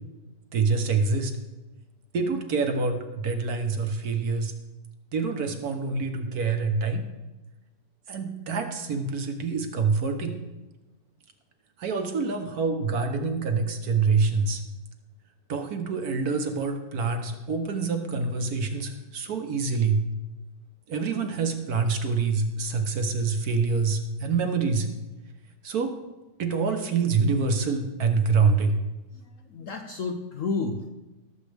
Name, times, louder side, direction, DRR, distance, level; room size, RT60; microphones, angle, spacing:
voice 1, 0.5-1.3 2.1-4.5 5.1-7.0 8.1-10.4 11.8-14.6 15.5-20.0 20.9-24.9 25.6-26.0 26.4-28.8, right 4 dB, 60° right, 6 dB, 1.3 m, -26 dB
voice 2, 29.1-30.9, left 4 dB, 65° left, 5 dB, 0.8 m, -31 dB
18.0 x 7.3 x 3.4 m, 1.1 s
omnidirectional pair, 2.0 m